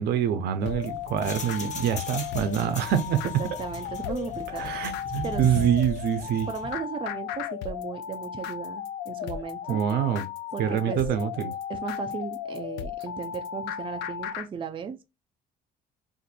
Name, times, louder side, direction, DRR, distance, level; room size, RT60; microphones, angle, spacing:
voice 1, 0.0-3.2 4.6-6.5 9.7-10.2 10.6-11.5, right 9 dB, 75° right, 0.6 m, -26 dB
sound 1, 0.6-14.5, left 9 dB, 90° left, 0.4 m, -35 dB
sound 2, 0.6-6.8, left 3 dB, 45° left, 0.9 m, -39 dB
voice 2, 3.4-4.7 5.2-5.5 6.5-9.8 10.5-11.0 11.7-15.0, right 6 dB, 30° right, 0.5 m, -36 dB
2.6 x 2.5 x 4.0 m
cardioid pair, 110°, 17 cm